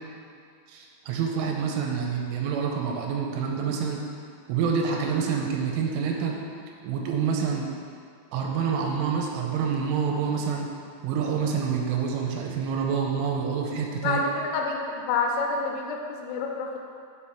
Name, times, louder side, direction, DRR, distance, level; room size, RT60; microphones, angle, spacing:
voice 1, 0.7-4.0 4.5-6.3 6.8-7.7 8.3-10.7 11.0-14.2, right 6 dB, 90° right, 0 dB, 3.2 m, -27 dB
voice 2, 14.0-16.8, left 4 dB, 80° left, 1 dB, 3.0 m, -28 dB
6.4 x 5.8 x 5.6 m, 2.3 s
omnidirectional pair, 5.7 m